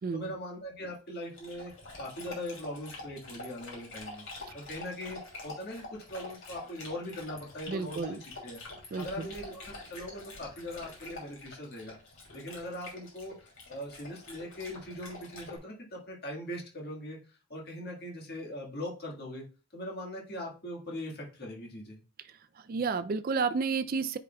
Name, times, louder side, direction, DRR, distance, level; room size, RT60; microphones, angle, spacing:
voice 1, 0.1-4.2 4.5-5.8 6.1-8.6 8.9-11.9 12.3-19.4 19.7-22.0, left 1 dB, 45° left, 1.7 m, -41 dB
Dog, 1.3-15.6, left 2 dB, 60° left, 2.7 m, -46 dB
voice 2, 7.7-8.2 8.9-9.3 22.7-24.2, right 5 dB, 40° right, 0.3 m, -31 dB
9.4 x 4.9 x 2.3 m
head